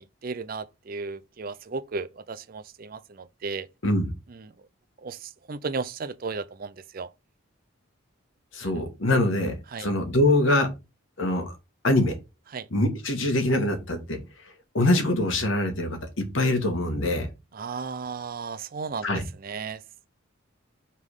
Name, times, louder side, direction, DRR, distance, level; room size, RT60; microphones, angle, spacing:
voice 1, 0.0-3.7 4.3-4.5 5.0-7.1 8.6-8.7 9.7-9.9 12.5-12.7 17.5-19.1 19.4-19.8, right 4 dB, 45° right, 0.4 m, -35 dB
voice 2, 8.5-10.7 11.2-11.5 11.8-12.1 12.7-14.2 14.7-17.3 19.0-19.2, left 1 dB, 65° left, 1.5 m, -24 dB
5.7 x 3.6 x 4.8 m
head